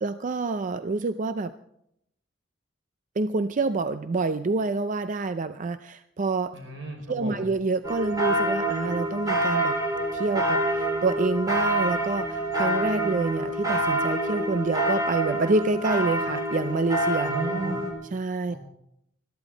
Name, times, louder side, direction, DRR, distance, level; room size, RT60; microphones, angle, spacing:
voice 1, 0.0-1.5 3.2-6.5 7.1-9.8 10.1-17.3 18.1-18.5, right 3 dB, 40° right, 11 dB, 0.5 m, -27 dB
voice 2, 6.5-7.5 17.3-17.8 18.5-18.6, right 1 dB, 80° right, 2 dB, 5.4 m, -34 dB
sound 1, 7.8-17.9, right 1 dB, 20° right, 3.8 m, -26 dB
21.0 x 13.5 x 4.0 m, 0.76 s
head